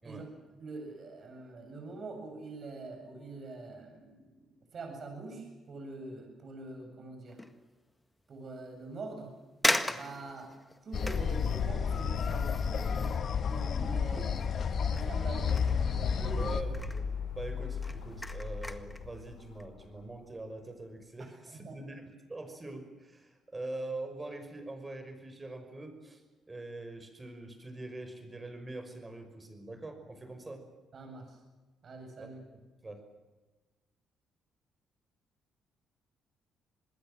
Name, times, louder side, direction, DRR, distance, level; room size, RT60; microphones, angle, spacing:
voice 1, 0.0-4.3 4.7-7.4 8.3-9.3 9.9-10.5 10.8-13.2 13.5-14.4 14.7-16.6 21.5-21.8 30.9-31.4 31.8-32.4, right 3 dB, 45° right, 3 dB, 7.8 m, -44 dB
sound 1, 7.3-7.6 8.2-8.3 9.1-9.2 9.6-14.6 14.9-16.4 16.6-17.1 17.5-19.0 19.5-19.6, left 1 dB, 10° left, 1.7 m, -37 dB
sound 2, 10.9-16.6, left 6 dB, 50° left, 1.5 m, -31 dB
sound 3, 15.4-20.0, left 6 dB, 80° left, 5.1 m, -36 dB
voice 2, 16.4-17.1 17.3-30.6 32.2-33.0, right 2 dB, 20° right, 7 dB, 5.7 m, -43 dB
26.5 x 20.5 x 7.6 m, 1.2 s
cardioid pair, 100°, 0 cm